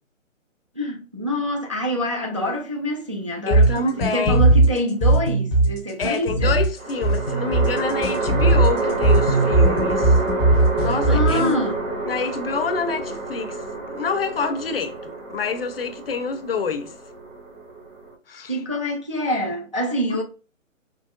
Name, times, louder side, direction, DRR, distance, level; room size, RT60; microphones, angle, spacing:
voice 1, 0.8-6.6 10.9-11.8 18.5-20.2, equal, 25° right, 0.4 m, -26 dB
voice 2, 3.5-4.4 6.0-10.2 10.8-11.7 12.1-13.6 13.9-16.9 18.3-18.6, left 5 dB, 50° left, 0.7 m, -27 dB
sound 1, 3.5-11.5, right 2 dB, 5° left, 0.7 m, -18 dB
sound 2, 3.7-4.5 6.8-18.1, right 3 dB, 75° right, 2.1 m, -28 dB
5.3 x 3.0 x 2.2 m
hypercardioid pair, 155°, 39 cm